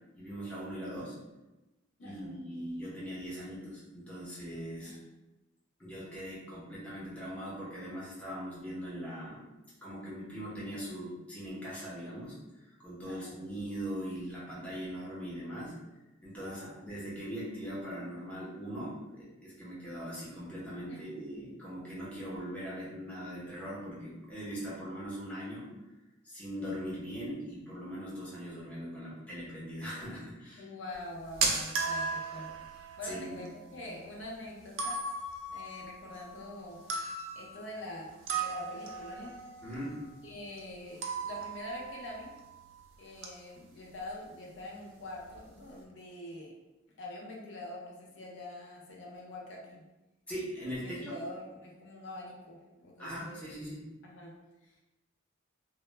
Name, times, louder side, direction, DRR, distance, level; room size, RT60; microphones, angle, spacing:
voice 1, 0.1-1.2 2.0-4.9 5.8-9.5 9.8-15.7 16.2-25.7 26.2-30.7 33.0-33.4 39.6-40.0 50.3-51.1 53.0-53.8, equal, 5° left, -8 dB, 0.6 m, -40 dB
voice 2, 2.0-2.3 4.8-5.0 13.0-13.4 14.6-14.7 16.3-16.8 20.9-21.0 30.6-35.0 35.5-36.8 37.4-39.4 40.2-42.3 43.0-46.5 47.0-49.8 50.8-53.5 54.0-54.8, left 1 dB, 65° left, -2 dB, 0.4 m, -45 dB
sound 1, 30.9-42.9 43.1-43.5 43.8-44.0 44.6-44.7 44.9-45.5, right 4 dB, 75° right, 0.4 m, -37 dB
2.0 x 2.0 x 3.1 m, 1.0 s
head